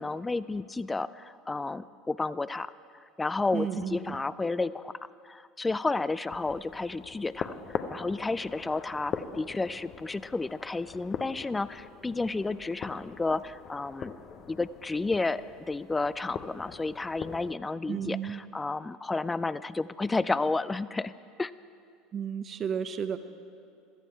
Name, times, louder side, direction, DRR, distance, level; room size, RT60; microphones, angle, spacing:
voice 1, 0.0-2.7 3.2-14.1 14.5-21.1 21.4-21.5, left 3 dB, 15° left, 17 dB, 0.4 m, -31 dB
voice 2, 3.5-4.2 17.9-18.4 22.1-23.2, right 7 dB, 40° right, 11 dB, 0.8 m, -32 dB
sound 1, 6.3-17.5, left 7 dB, 40° left, 0.7 m, -42 dB
16.0 x 14.0 x 4.6 m, 2.5 s
figure-of-eight pair, 70°, 0 cm